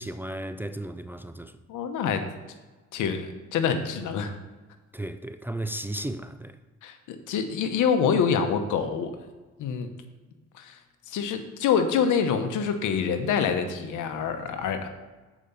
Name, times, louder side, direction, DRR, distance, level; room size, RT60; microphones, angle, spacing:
voice 1, 0.0-1.5 4.9-6.6, right 1 dB, 5° right, 0.4 m, -34 dB
voice 2, 1.7-2.2 2.9-4.3 6.8-9.1 9.6-9.9 10.5-10.8 11.1-14.9, left 6 dB, 85° left, 1.0 m, -26 dB
7.5 x 5.0 x 6.8 m
cardioid pair, 90°, 30 cm